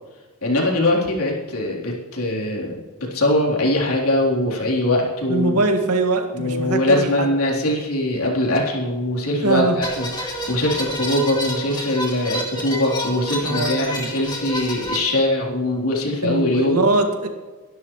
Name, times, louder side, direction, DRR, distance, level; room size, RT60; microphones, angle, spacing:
voice 1, 0.4-2.8 3.1-5.6 6.3-16.8, left 1 dB, 75° left, -3 dB, 3.7 m, -22 dB
voice 2, 5.3-7.3 9.4-9.8 13.4-14.1 16.2-17.3, right 2 dB, 90° right, 3 dB, 2.1 m, -22 dB
sound 1, 9.8-15.0, equal, 20° left, 2.8 m, -29 dB
22.5 x 12.5 x 3.2 m, 1.3 s
head